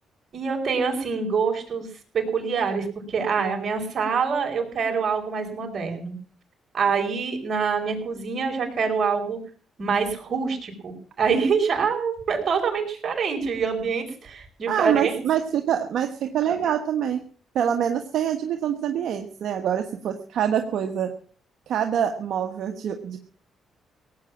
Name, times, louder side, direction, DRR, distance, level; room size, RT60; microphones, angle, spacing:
voice 1, 0.3-1.9 2.1-6.2 6.7-9.4 9.8-15.2, right 5 dB, 50° right, 3 dB, 5.2 m, -25 dB
voice 2, 14.7-17.2 17.5-21.1 21.7-23.2, right 9 dB, 70° right, 6 dB, 1.4 m, -25 dB
17.5 x 8.9 x 7.3 m, 0.44 s
cardioid pair, 90°, 0 cm